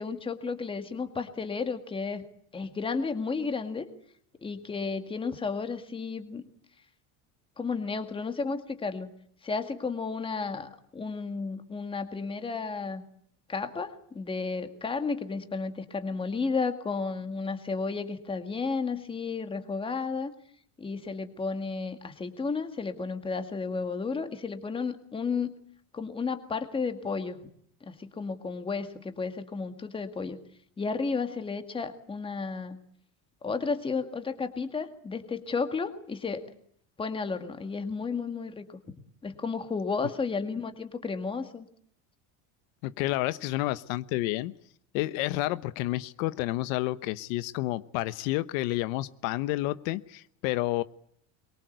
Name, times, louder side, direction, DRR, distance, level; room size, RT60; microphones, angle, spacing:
voice 1, 0.0-2.2 2.5-3.9 4.4-6.4 7.6-9.1 9.4-13.0 13.5-20.3 20.8-25.5 25.9-27.4 27.8-30.4 30.8-32.8 33.4-36.4 37.0-38.8 39.2-41.7, left 4 dB, 15° left, 8 dB, 2.0 m, -32 dB
voice 2, 42.8-44.5 44.9-50.8, left 17 dB, 85° left, 14 dB, 1.2 m, -30 dB
23.0 x 23.0 x 8.0 m, 0.66 s
cardioid pair, 170°, 39 cm